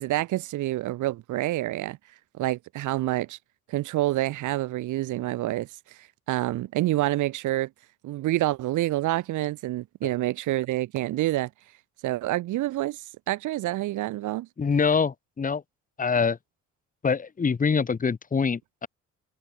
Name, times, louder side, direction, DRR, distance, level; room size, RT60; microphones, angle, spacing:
voice 1, 0.0-2.0 2.4-3.4 3.7-7.7 8.0-11.5 12.0-14.5, right 16 dB, 85° right, 1.1 m, -27 dB
voice 2, 14.6-15.6 16.0-16.4 17.0-18.9, left 5 dB, 25° left, 1.1 m, -25 dB
cardioid pair, 90°, 30 cm